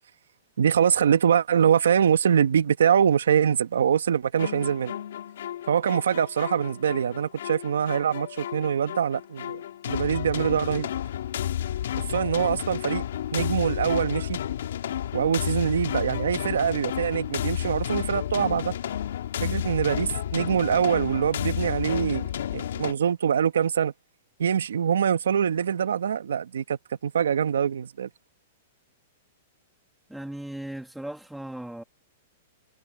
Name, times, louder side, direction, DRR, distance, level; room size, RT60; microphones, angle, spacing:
voice 1, 0.6-4.9 5.7-9.6 9.9-10.9 12.1-13.0 13.3-14.4 15.1-18.7 19.4-23.9 24.4-28.1, right 8 dB, 85° right, 1.8 m, -24 dB
sound 1, 4.4-22.9, left 10 dB, 75° left, 1.9 m, -31 dB
voice 2, 30.1-31.8, right 1 dB, 5° right, 1.6 m, -37 dB
hypercardioid pair, 130°, 0 cm